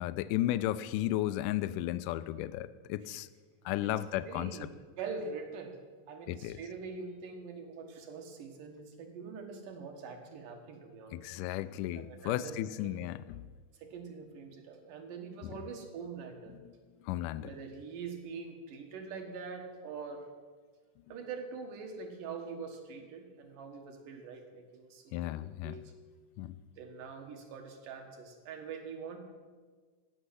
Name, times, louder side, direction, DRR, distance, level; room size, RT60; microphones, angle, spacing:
voice 1, 0.0-3.3 3.7-4.5 6.3-6.6 11.1-13.5 17.1-17.5 25.1-25.8 26.4-26.6, left 14 dB, 80° left, 15 dB, 2.1 m, -34 dB
voice 2, 4.2-5.8 6.1-11.3 11.9-12.6 12.8-13.1 13.7-16.5 17.3-20.3 21.1-25.9 26.8-29.2, right 5 dB, 75° right, 3 dB, 3.1 m, -44 dB
15.0 x 6.4 x 9.7 m, 1.5 s
omnidirectional pair, 3.9 m